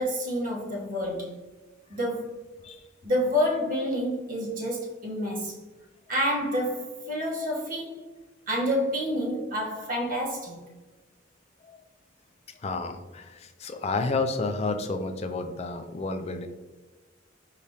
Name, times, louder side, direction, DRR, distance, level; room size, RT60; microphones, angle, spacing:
voice 1, 0.0-1.4 1.9-2.4 3.0-5.6 6.1-8.0 8.5-10.7, equal, 45° right, -1 dB, 1.0 m, -28 dB
voice 2, 12.6-16.5, left 3 dB, 30° left, 7 dB, 0.3 m, -30 dB
4.8 x 3.3 x 2.7 m, 1.2 s
head